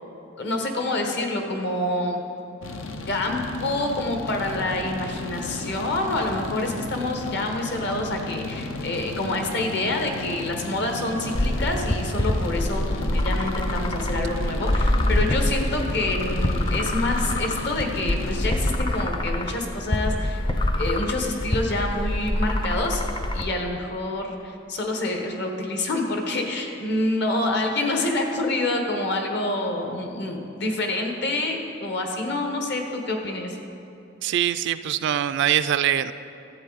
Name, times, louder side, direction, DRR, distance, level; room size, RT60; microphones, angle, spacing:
voice 1, 0.4-2.2 3.1-20.4 20.8-23.0 23.3-33.6, left 2 dB, 60° left, 3 dB, 1.2 m, -27 dB
sound 1, 2.6-18.8, left 2 dB, 90° left, 0.7 m, -34 dB
sound 2, 11.3-23.4, left 1 dB, 25° left, 0.5 m, -25 dB
voice 2, 34.2-36.1, right 10 dB, 65° right, 13 dB, 0.3 m, -23 dB
12.5 x 7.9 x 4.0 m, 2.8 s
head